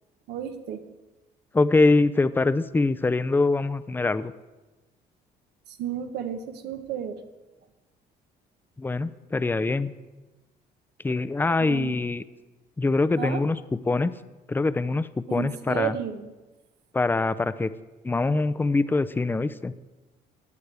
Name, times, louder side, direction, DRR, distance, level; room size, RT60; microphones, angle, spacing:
voice 1, 0.3-0.8 5.7-7.2 11.7-11.9 13.2-13.4 15.3-16.3, right 9 dB, 80° right, 8 dB, 1.1 m, -32 dB
voice 2, 1.5-4.3 8.8-9.9 11.0-12.2 12.8-14.1 14.5-16.0 16.9-17.7 18.0-19.7, left 3 dB, 10° left, 14 dB, 0.4 m, -24 dB
16.5 x 9.5 x 3.4 m, 1.1 s
cardioid pair, 110°, 17 cm